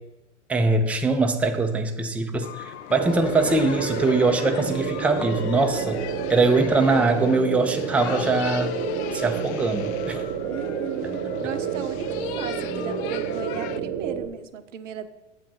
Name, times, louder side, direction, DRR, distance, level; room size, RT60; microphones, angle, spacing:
voice 1, 0.5-8.7 9.1-10.2, right 3 dB, 5° right, 5 dB, 0.5 m, -22 dB
sound 1, 2.4-13.8, left 10 dB, 65° left, 0.5 m, -37 dB
Livestock farm animals working animals, 3.0-6.1 6.4-7.1 7.9-8.3, left 5 dB, 85° left, 0.8 m, -40 dB
sound 2, 3.0-14.3, right 8 dB, 45° right, 0.8 m, -30 dB
voice 2, 10.4-15.1, right 8 dB, 85° right, 11 dB, 0.6 m, -36 dB
7.3 x 3.8 x 5.9 m, 1.0 s
hypercardioid pair, 95°, 36 cm